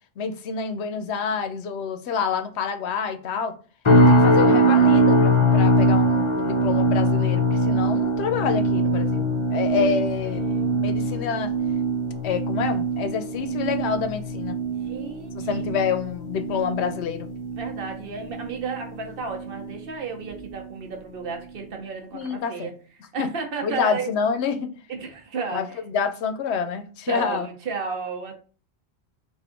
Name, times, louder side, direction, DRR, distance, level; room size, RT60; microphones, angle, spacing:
voice 1, 0.2-3.5 3.9-10.4 10.7-11.5 12.2-14.6 15.4-17.3 22.1-22.7 23.2-23.3 23.6-24.7 25.5-27.5, left 6 dB, 75° left, 0.8 m, -27 dB
sound 1, 3.8-19.1 19.4-19.8 20.3-20.5, right 1 dB, 40° left, 0.5 m, -22 dB
voice 2, 9.5-10.9 14.8-15.6 17.5-22.7 23.1-24.1 24.9-25.8 27.1-28.3, right 5 dB, 60° right, 0.9 m, -33 dB
3.5 x 2.5 x 3.6 m
omnidirectional pair, 1.1 m